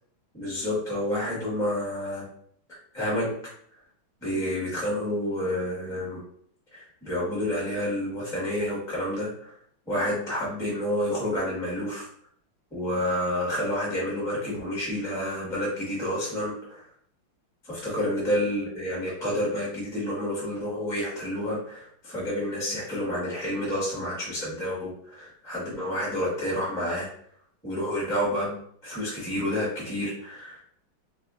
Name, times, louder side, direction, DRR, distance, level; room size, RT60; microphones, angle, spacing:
voice 1, 0.3-2.2 2.7-3.4 4.2-6.2 6.7-9.5 9.9-12.1 12.7-16.8 17.6-27.1 27.6-30.6, equal, ahead, -6 dB, 0.9 m, -29 dB
3.1 x 2.7 x 3.6 m, 0.63 s
omnidirectional pair, 2.3 m